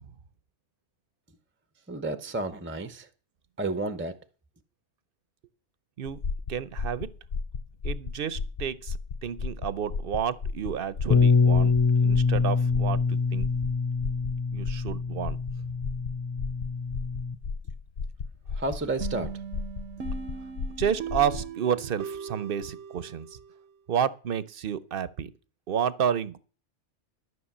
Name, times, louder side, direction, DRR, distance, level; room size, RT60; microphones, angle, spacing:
voice 1, 1.9-3.1 3.6-4.1 18.6-19.3, right 2 dB, 10° right, 0.7 m, -31 dB
sound 1, 6.1-21.5, left 4 dB, 55° left, 0.8 m, -35 dB
voice 2, 6.5-7.1 7.8-13.5 14.5-15.4 20.8-23.4 23.9-25.3 25.7-26.4, right 8 dB, 55° right, 0.9 m, -30 dB
Bass guitar, 11.1-17.3, left 4 dB, 35° left, 0.4 m, -25 dB
sound 2, 19.0-23.7, right 7 dB, 85° right, 1.2 m, -39 dB
13.0 x 6.0 x 7.3 m
omnidirectional pair, 1.2 m